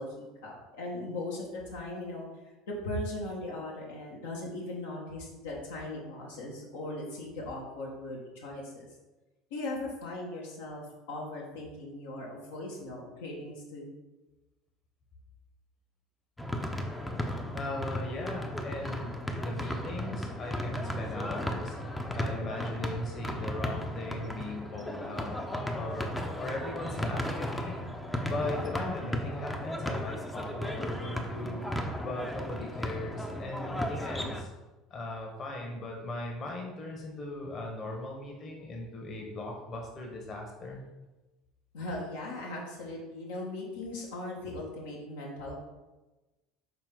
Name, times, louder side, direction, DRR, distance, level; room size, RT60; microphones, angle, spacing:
voice 1, 0.0-2.3 2.7-8.8 9.5-10.8 11.1-13.9 41.7-45.5, left 2 dB, 70° left, -3 dB, 1.3 m, -38 dB
sound 1, 16.4-34.4, equal, 5° left, 0.7 m, -35 dB
voice 2, 17.5-27.8 28.2-31.7 32.0-34.5 34.9-40.8, left 2 dB, 40° left, 1 dB, 1.3 m, -38 dB
5.8 x 4.4 x 3.8 m, 1.1 s
figure-of-eight pair, 65°, 0 cm